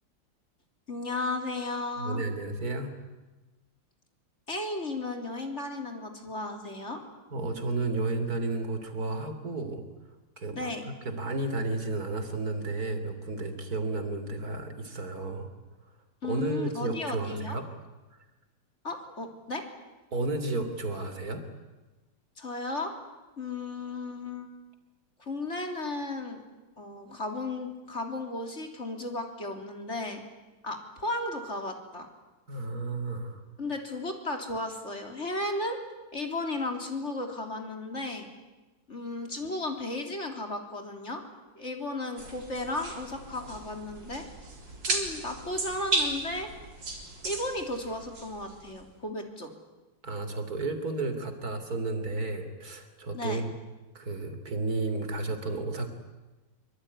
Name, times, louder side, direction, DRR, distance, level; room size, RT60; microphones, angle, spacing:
voice 1, 0.9-2.2 4.5-7.0 10.6-10.9 16.2-17.6 18.8-19.6 22.4-22.9 23.4-24.5 25.2-26.4 26.8-30.2 30.6-32.1 33.6-35.8 36.1-38.3 38.9-41.2 41.6-44.2 44.9-46.5 47.2-49.5 53.1-53.4, left 2 dB, 35° left, 4 dB, 3.5 m, -34 dB
voice 2, 2.0-2.9 7.3-9.8 10.4-15.5 16.2-17.7 20.1-21.4 32.5-33.4 50.0-53.5 54.0-55.9, right 2 dB, 45° right, 8 dB, 3.5 m, -32 dB
sound 1, 42.2-48.9, right 2 dB, 65° right, 4.5 m, -35 dB
25.0 x 24.5 x 9.8 m, 1.2 s
omnidirectional pair, 2.2 m